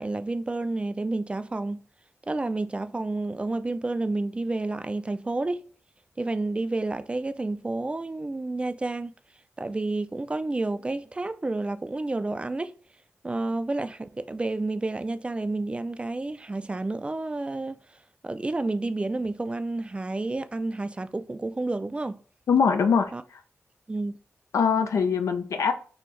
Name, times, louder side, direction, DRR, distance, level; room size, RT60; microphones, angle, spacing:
voice 1, 0.0-1.8 2.3-5.6 6.2-9.1 9.6-12.8 13.2-17.8 18.2-22.2 23.1-23.2 23.9-24.1, right 2 dB, 20° right, 0.3 m, -30 dB
voice 2, 22.5-23.1 24.5-25.7, left 6 dB, 85° left, 0.4 m, -22 dB
4.2 x 2.7 x 3.1 m
wide cardioid pair, 100°, 5 cm